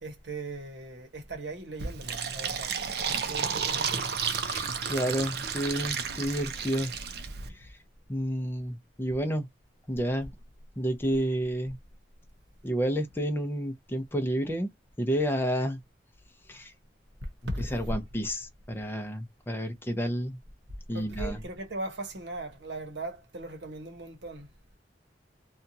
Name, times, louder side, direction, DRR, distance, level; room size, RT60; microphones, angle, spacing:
voice 1, 0.0-2.8 3.2-4.1 4.6-4.7 17.2-17.9 20.9-24.5, right 2 dB, 80° right, 1.0 m, -38 dB
Fill (with liquid), 1.8-7.5, right 6 dB, 60° right, 0.6 m, -32 dB
voice 2, 4.4-6.9 7.5-7.7 8.1-9.5 9.9-10.3 10.8-11.8 12.6-14.7 15.0-15.8 16.5-16.7 17.6-20.4 20.9-21.4, equal, 10° left, 0.6 m, -30 dB
2.8 x 2.3 x 2.6 m
head